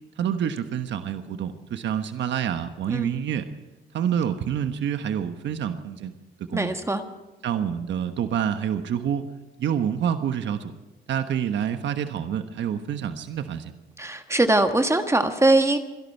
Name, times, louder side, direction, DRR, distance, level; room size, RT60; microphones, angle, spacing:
voice 1, 0.2-3.5 3.9-6.1 6.5-6.7 7.4-9.2 9.6-10.7 11.1-13.7, right 8 dB, 65° right, 8 dB, 1.2 m, -27 dB
voice 2, 6.5-7.0 14.0-15.8, right 2 dB, 15° right, 6 dB, 1.4 m, -21 dB
26.0 x 11.5 x 4.6 m, 1.1 s
cardioid pair, 90°, 20 cm